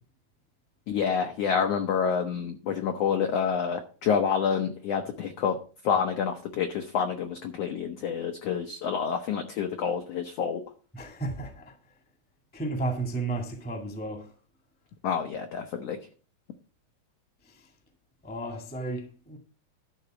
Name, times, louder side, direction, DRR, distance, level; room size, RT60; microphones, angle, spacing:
voice 1, 0.9-5.6 5.8-10.6 15.0-16.0, left 7 dB, 75° left, 1.5 m, -28 dB
voice 2, 10.9-11.7 12.5-14.2 18.2-19.4, right 2 dB, 5° left, 0.8 m, -33 dB
12.0 x 4.2 x 7.7 m
omnidirectional pair, 4.0 m